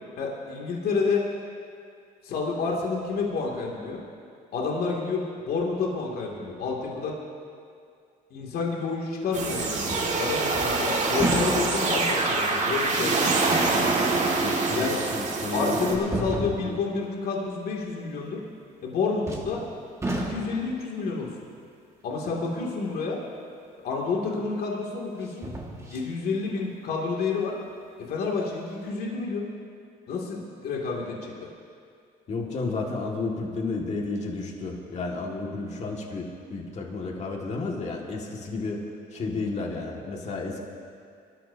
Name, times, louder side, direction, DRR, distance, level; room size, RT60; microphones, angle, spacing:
voice 1, 0.2-1.2 2.2-4.0 4.5-7.2 8.3-13.4 14.7-15.0 15.5-18.4 18.8-19.6 20.2-21.3 22.0-23.2 23.8-25.5 25.9-27.6 28.0-29.5 30.1-31.3, left 4 dB, 65° left, -2 dB, 2.6 m, -29 dB
sound 1, 9.3-16.0, right 3 dB, 45° right, 2.2 m, -25 dB
sound 2, 9.8-10.2 10.5-12.1 12.7-12.8 14.7-14.8 16.0-16.9 19.2-19.7 20.0-20.7 23.7-23.8 25.2-26.1 26.6-26.7, right 2 dB, 15° right, 1.8 m, -31 dB
voice 2, 14.3-16.8 32.3-38.8 39.1-40.6, left 3 dB, 40° left, 0 dB, 2.0 m, -32 dB
23.0 x 13.5 x 2.8 m, 2.3 s
cardioid pair, 110°, 17 cm